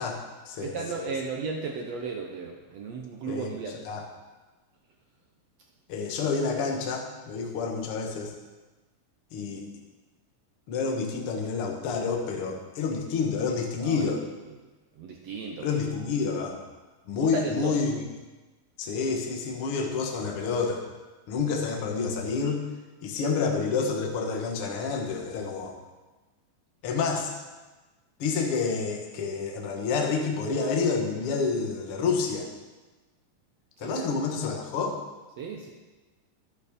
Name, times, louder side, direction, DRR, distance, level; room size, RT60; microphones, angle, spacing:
voice 1, 0.0-1.2 3.3-3.6 3.8-4.1 5.9-8.3 9.3-9.6 10.7-14.2 15.6-16.6 17.1-18.1 18.8-20.8 21.3-22.6 23.0-25.7 26.8-27.3 28.2-32.5 33.8-35.0, left 5 dB, 55° left, 1 dB, 1.7 m, -29 dB
voice 2, 0.6-3.8 13.8-14.0 15.0-15.7 17.2-17.7 33.8-34.1 35.4-35.7, right 4 dB, 70° right, 1 dB, 1.6 m, -34 dB
11.0 x 8.6 x 5.2 m, 1.2 s
omnidirectional pair, 4.0 m